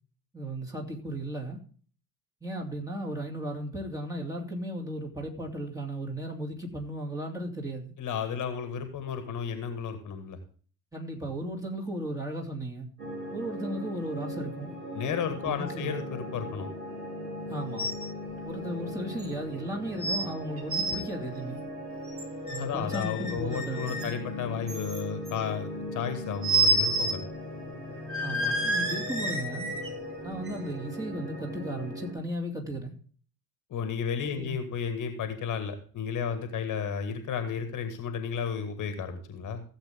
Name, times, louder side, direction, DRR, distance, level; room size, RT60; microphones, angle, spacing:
voice 1, 0.3-1.6 2.4-7.9 10.9-12.9 13.3-14.7 15.3-16.0 17.5-17.9 18.4-21.6 22.5-24.1 28.2-29.7 30.2-32.9 34.3-34.6, right 1 dB, 5° right, 2.5 m, -35 dB
voice 2, 8.0-10.4 14.9-16.7 22.6-27.2 33.7-39.6, left 7 dB, 40° left, 1.7 m, -33 dB
sound 1, 13.0-32.1, left 1 dB, 80° right, 4.0 m, -39 dB
sound 2, 17.8-18.1 18.4-18.5 19.2-19.3 20.0-20.3 20.6-21.0 22.1-22.6 22.9-24.2 24.7-25.3 26.4-27.2 27.5-27.6 28.1-29.9 30.5-30.6, right 2 dB, 30° right, 3.9 m, -29 dB
15.5 x 7.7 x 3.6 m
figure-of-eight pair, 65°, 45 cm